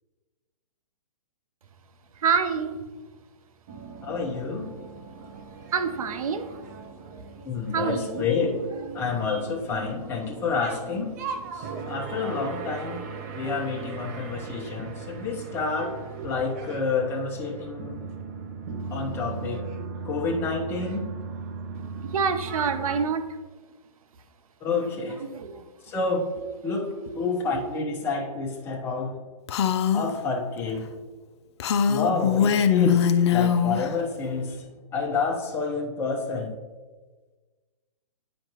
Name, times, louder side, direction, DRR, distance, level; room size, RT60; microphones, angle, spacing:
voice 1, 2.2-2.8 5.7-6.5 7.7-8.2 12.2-12.5 15.8-16.3 22.0-23.3 25.2-25.6, right 6 dB, 65° right, 10 dB, 0.7 m, -27 dB
sound 1, 3.7-23.1, right 5 dB, 25° right, 0.4 m, -38 dB
voice 2, 4.0-4.7 7.5-8.6 8.9-11.1 11.5-13.0 13.4-18.0 18.9-19.7 20.0-21.1 24.6-25.2 25.9-26.3 26.6-29.2 29.9-30.9 31.9-34.7 34.9-36.5, left 4 dB, 10° left, 0 dB, 0.7 m, -29 dB
Female speech woman speaking, 29.5-30.1 31.6-33.9, left 8 dB, 45° left, 0.4 m, -22 dB
8.9 x 5.2 x 3.0 m, 1.3 s
hypercardioid pair, 150°, 19 cm